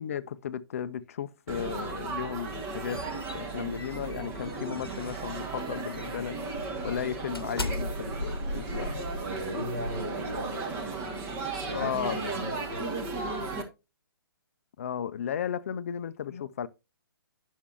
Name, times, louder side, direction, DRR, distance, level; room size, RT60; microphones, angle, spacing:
voice 1, 0.0-9.0 11.7-12.2 14.8-16.7, left 9 dB, 40° left, 0.4 m, -35 dB
Laughter / Chatter / Crowd, 1.5-13.6, right 3 dB, 20° right, 1.3 m, -36 dB
sound 1, 2.4-5.4 5.9-6.1 6.5-10.8, left 1 dB, 85° left, 0.8 m, -38 dB
voice 2, 8.9-13.0, equal, 65° right, 2.6 m, -38 dB
9.6 x 6.4 x 2.9 m
figure-of-eight pair, 130°, 12 cm